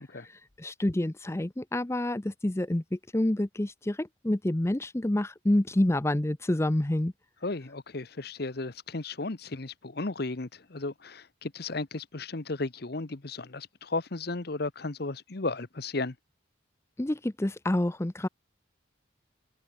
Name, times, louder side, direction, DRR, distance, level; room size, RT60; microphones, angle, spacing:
voice 1, 0.1-7.1 17.0-18.3, left 1 dB, 15° left, 0.5 m, -28 dB
voice 2, 7.4-16.1, left 3 dB, 55° left, 1.1 m, -34 dB
head